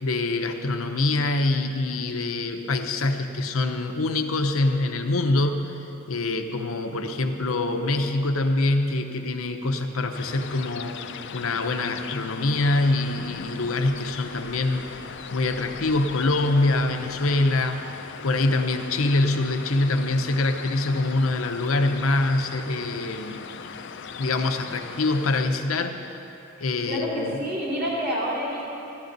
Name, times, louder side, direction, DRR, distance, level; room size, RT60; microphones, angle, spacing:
voice 1, 0.0-5.7 6.1-15.0 15.3-18.0 18.2-23.4 24.2-26.1 26.6-27.4, left 2 dB, 85° left, 5 dB, 0.8 m, -24 dB
sound 1, 10.1-25.5, left 6 dB, 60° left, 0.5 m, -39 dB
voice 2, 26.6-28.6, equal, 50° right, -7 dB, 3.0 m, -28 dB
13.5 x 13.0 x 4.0 m, 2.9 s
head